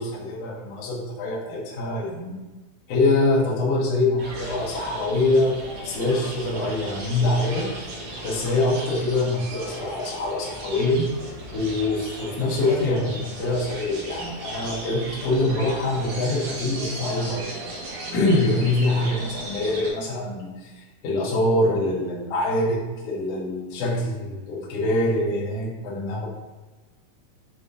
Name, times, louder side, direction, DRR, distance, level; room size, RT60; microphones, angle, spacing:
voice 1, 0.0-2.3 2.9-5.6 5.8-7.7 8.2-11.1 11.5-17.5 18.1-26.3, left 2 dB, 70° left, -6 dB, 1.6 m, -24 dB
sound 1, 4.2-19.9, right 1 dB, 80° right, 2.7 m, -36 dB
7.0 x 2.5 x 2.6 m, 1.2 s
omnidirectional pair, 4.0 m